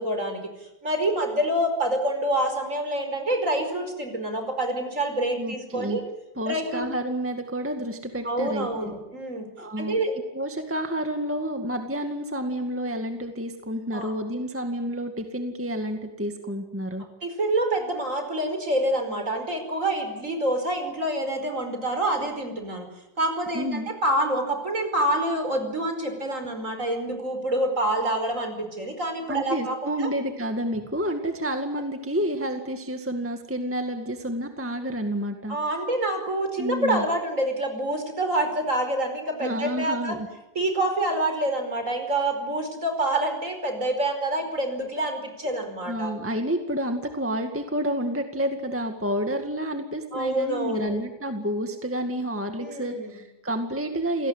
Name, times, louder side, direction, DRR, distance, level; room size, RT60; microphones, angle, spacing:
voice 1, 0.0-6.0 6.5-6.8 8.2-9.5 9.8-10.2 13.9-14.1 17.2-22.9 23.2-30.1 35.5-40.2 40.6-46.1 50.1-51.0 52.6-53.2, right 1 dB, 50° right, 6 dB, 5.4 m, -27 dB
voice 2, 5.4-6.0 6.4-8.9 9.6-10.0 10.3-17.0 23.5-23.9 29.3-35.6 36.6-37.1 39.4-40.3 45.8-54.3, equal, 10° right, 6 dB, 2.0 m, -29 dB
28.0 x 18.5 x 9.8 m, 0.95 s
omnidirectional pair, 1.8 m